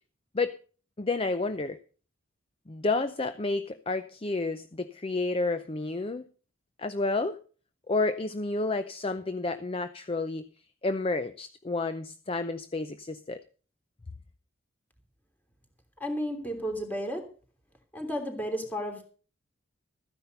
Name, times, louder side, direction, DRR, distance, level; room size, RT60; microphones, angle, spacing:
voice 1, 1.0-1.8 2.7-6.3 6.8-7.4 7.9-10.5 10.8-13.4, left 3 dB, 25° left, 11 dB, 0.5 m, -30 dB
voice 2, 16.0-17.2 17.9-19.0, equal, 10° left, 4 dB, 3.2 m, -32 dB
14.5 x 10.0 x 5.4 m, 0.39 s
head